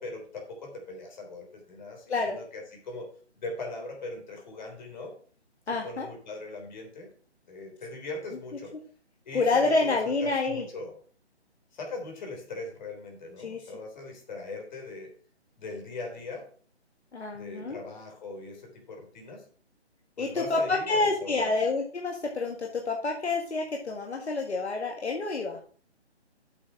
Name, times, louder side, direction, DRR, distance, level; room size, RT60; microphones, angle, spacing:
voice 1, 0.0-5.1 5.8-7.1 7.5-8.8 9.3-11.0 11.7-15.1 15.6-16.5 17.3-19.4 20.2-21.5, left 3 dB, 40° left, 2 dB, 3.5 m, -40 dB
voice 2, 5.7-6.1 9.3-10.6 13.4-13.6 17.1-17.8 20.2-25.6, left 3 dB, 70° left, 1 dB, 1.8 m, -28 dB
8.2 x 6.1 x 5.8 m, 0.44 s
figure-of-eight pair, 155°, 34 cm